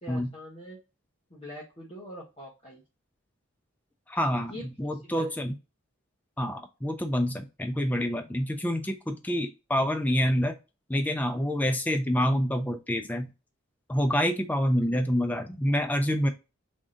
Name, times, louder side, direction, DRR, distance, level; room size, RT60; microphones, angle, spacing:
voice 1, 0.0-0.8 1.3-2.8 4.5-4.6 5.0-5.3, equal, 25° left, -5 dB, 0.9 m, -42 dB
voice 2, 4.1-4.5 4.8-5.5 6.4-10.6 10.9-13.3 13.9-16.3, equal, 5° left, 6 dB, 0.3 m, -27 dB
3.6 x 2.7 x 3.7 m, 0.29 s
head